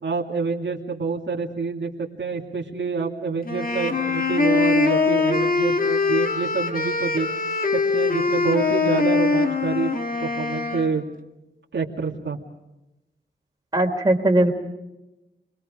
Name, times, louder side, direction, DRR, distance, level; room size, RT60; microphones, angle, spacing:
voice 1, 0.0-7.3 7.7-9.9 10.2-11.0 11.7-12.4, right 4 dB, 85° right, -1 dB, 2.5 m, -27 dB
sound 1, 3.4-10.9, left 4 dB, 50° left, 2.2 m, -22 dB
voice 2, 13.7-14.5, right 1 dB, 20° right, 1 dB, 3.6 m, -19 dB
30.0 x 22.0 x 5.1 m, 0.95 s
wide cardioid pair, 85°, 18 cm